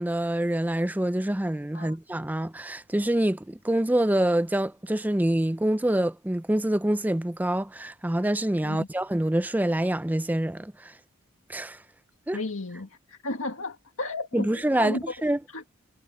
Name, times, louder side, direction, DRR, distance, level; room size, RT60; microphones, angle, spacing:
voice 1, 0.0-10.9 11.5-11.8 12.3-12.4 14.3-15.4, right 1 dB, 10° right, 0.5 m, -26 dB
voice 2, 12.3-15.1 15.5-15.6, left 2 dB, 75° left, 1.9 m, -34 dB
head